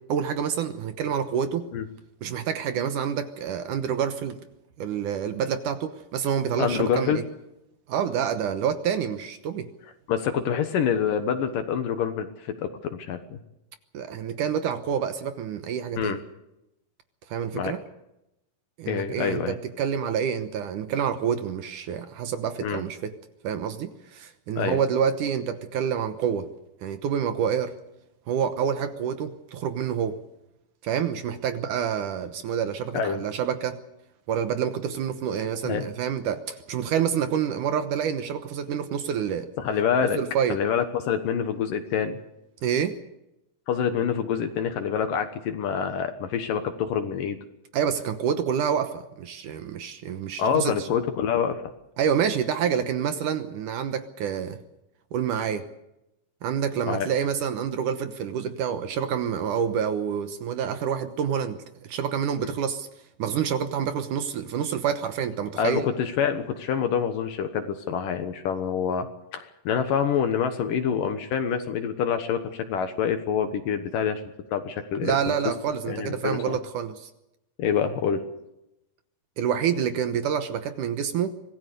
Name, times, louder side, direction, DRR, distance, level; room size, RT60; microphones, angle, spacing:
voice 1, 0.1-1.7 2.2-4.4 4.8-7.2 7.9-9.7 13.9-16.2 17.3-17.8 18.8-23.1 23.4-26.5 26.8-27.7 28.3-30.2 30.8-33.8 34.3-39.5 40.2-40.6 42.6-43.0 47.7-50.9 52.0-54.6 55.1-55.7 56.4-62.9 63.2-65.9 75.0-77.1 79.4-81.4, right 8 dB, 70° right, 9 dB, 2.3 m, -27 dB
voice 2, 6.6-7.2 10.1-13.4 16.0-16.2 17.5-17.7 18.9-19.6 22.6-22.8 24.6-24.8 32.9-33.2 35.6-35.9 39.6-40.2 40.5-42.2 43.7-47.4 50.4-51.6 56.9-57.1 62.4-62.5 65.6-74.2 74.5-75.3 75.9-76.6 77.6-78.2, left 7 dB, 70° left, 7 dB, 2.7 m, -26 dB
25.5 x 18.5 x 6.8 m, 0.88 s
omnidirectional pair, 4.3 m